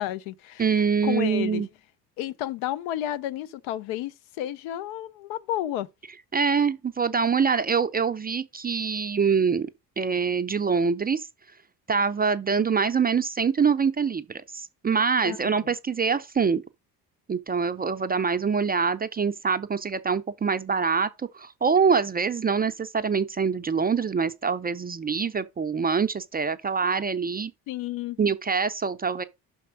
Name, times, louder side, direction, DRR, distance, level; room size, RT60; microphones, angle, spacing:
voice 1, 0.0-0.7 1.0-1.6 2.2-5.9 15.2-15.7 27.7-28.2, left 13 dB, 65° left, 0.6 m, -31 dB
voice 2, 0.6-1.7 6.3-9.7 10.0-11.2 11.9-16.6 17.3-21.1 21.3-27.5 28.2-29.2, right 5 dB, 20° right, 0.4 m, -24 dB
5.8 x 4.2 x 6.2 m
hypercardioid pair, 55°, 50 cm